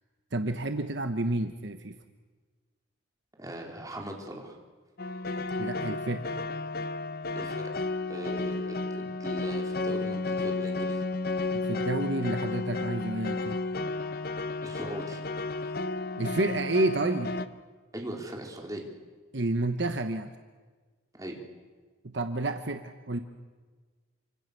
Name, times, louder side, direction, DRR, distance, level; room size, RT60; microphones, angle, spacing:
voice 1, 0.3-2.0 5.6-6.3 11.6-13.6 16.2-17.3 19.3-20.3 22.0-23.2, right 2 dB, 55° right, 7 dB, 1.2 m, -30 dB
voice 2, 3.4-4.6 7.4-7.8 8.1-11.1 14.6-15.2 17.9-18.9 21.1-21.4, right 1 dB, 15° right, 0 dB, 4.3 m, -40 dB
sound 1, 5.0-17.5, left 3 dB, 45° left, 1.0 m, -32 dB
28.0 x 26.0 x 6.9 m, 1.4 s
head